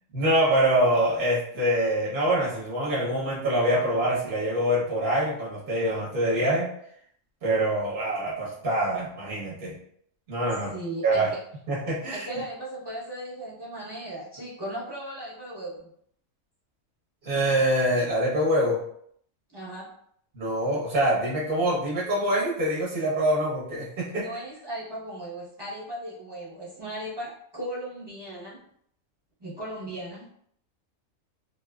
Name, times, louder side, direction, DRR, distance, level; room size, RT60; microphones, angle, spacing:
voice 1, 0.1-6.7 7.4-9.8 10.3-10.7 11.0-11.3 11.7-12.3 17.2-18.8 20.3-24.3, right 1 dB, 45° right, -6 dB, 1.0 m, -25 dB
voice 2, 10.7-11.2 12.1-15.9 19.5-19.9 24.1-28.6 29.4-30.2, right 1 dB, 25° right, -8 dB, 0.7 m, -37 dB
2.7 x 2.4 x 2.2 m, 0.66 s
omnidirectional pair, 1.4 m